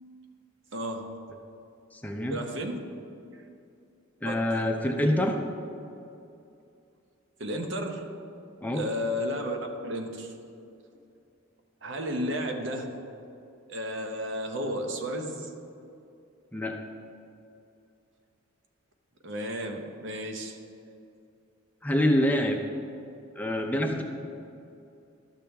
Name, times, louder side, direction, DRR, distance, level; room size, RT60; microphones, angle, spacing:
voice 1, 0.7-1.2 2.3-2.8 3.3-3.4 4.3-4.6 7.4-8.1 8.7-10.3 11.8-13.0 13.7-15.5 19.2-20.6, equal, 60° right, 5 dB, 0.8 m, -33 dB
voice 2, 1.9-2.4 4.2-5.4 8.6-8.8 16.5-16.8 21.8-22.6 23.4-24.0, left 1 dB, 10° left, 2 dB, 0.5 m, -26 dB
12.0 x 6.9 x 3.4 m, 2.6 s
head